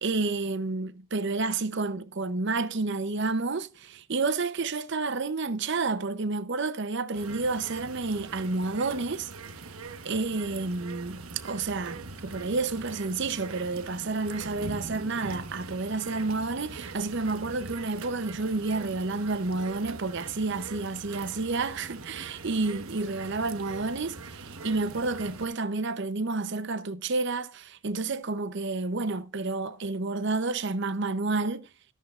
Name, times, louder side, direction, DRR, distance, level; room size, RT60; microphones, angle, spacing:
voice 1, 0.0-9.3 9.5-9.6 10.0-31.7, right 3 dB, 55° right, 0.7 m, -30 dB
sound 1, 7.1-25.5, right 3 dB, 75° right, 1.2 m, -42 dB
14.0 x 13.0 x 2.4 m
head